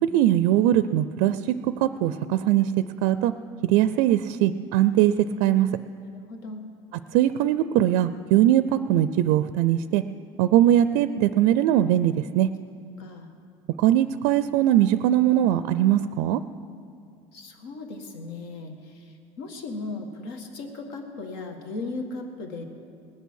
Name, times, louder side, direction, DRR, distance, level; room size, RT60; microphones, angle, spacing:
voice 1, 0.0-2.7 3.0-3.3 3.6-5.7 7.1-10.0 10.4-12.5 13.8-16.4, right 12 dB, 70° right, 13 dB, 0.4 m, -21 dB
voice 2, 6.0-6.6 13.0-13.3 17.3-22.6, left 3 dB, 80° left, 4 dB, 1.8 m, -37 dB
20.0 x 8.2 x 6.4 m, 2.3 s
cardioid pair, 150°, 13 cm